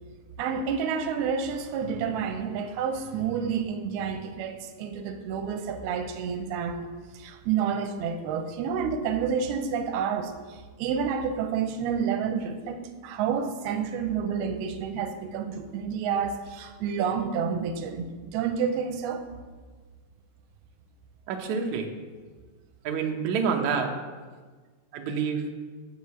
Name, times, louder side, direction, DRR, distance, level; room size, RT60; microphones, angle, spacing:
voice 1, 0.4-6.9 7.1-19.2, right 6 dB, 90° right, 7 dB, 2.7 m, -29 dB
voice 2, 21.3-21.9 22.8-23.9 24.9-25.4, right 6 dB, 70° right, 2 dB, 1.8 m, -27 dB
8.3 x 6.5 x 7.0 m, 1.5 s
omnidirectional pair, 4.4 m